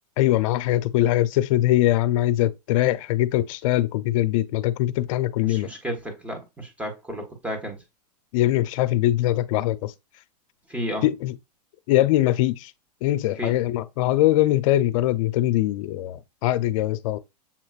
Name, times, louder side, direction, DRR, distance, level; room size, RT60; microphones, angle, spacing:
voice 1, 0.2-5.7 8.3-9.9 11.0-11.3 11.9-12.7 13.0-17.2, left 15 dB, 55° left, 0.6 m, -22 dB
voice 2, 5.4-7.8 10.7-11.0 13.4-13.5, equal, 5° right, 1.3 m, -32 dB
7.2 x 3.0 x 2.4 m
hypercardioid pair, 135°, 21 cm